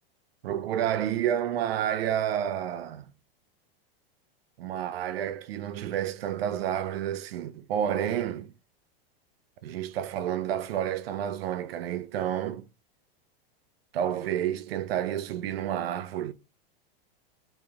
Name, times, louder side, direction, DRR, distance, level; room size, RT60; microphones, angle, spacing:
voice 1, 0.4-3.1 4.6-8.5 9.6-12.6 13.9-16.3, right 10 dB, 90° right, 0.6 m, -30 dB
3.4 x 3.2 x 2.7 m
supercardioid pair, 175°, 29 cm